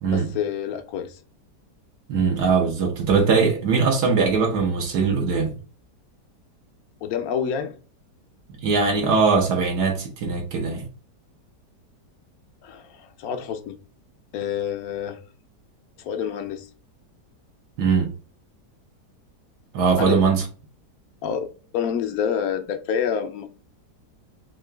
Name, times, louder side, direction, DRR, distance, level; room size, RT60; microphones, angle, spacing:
voice 1, 0.1-1.2 7.0-7.8 12.6-13.8 14.3-15.2 16.0-16.7 20.0-20.3 21.2-21.5 21.7-23.5, left 8 dB, 65° left, 1.0 m, -28 dB
voice 2, 2.1-5.6 8.6-10.9 17.8-18.1 19.7-20.4, right 5 dB, 70° right, 1.4 m, -21 dB
3.7 x 2.8 x 3.3 m
omnidirectional pair, 1.9 m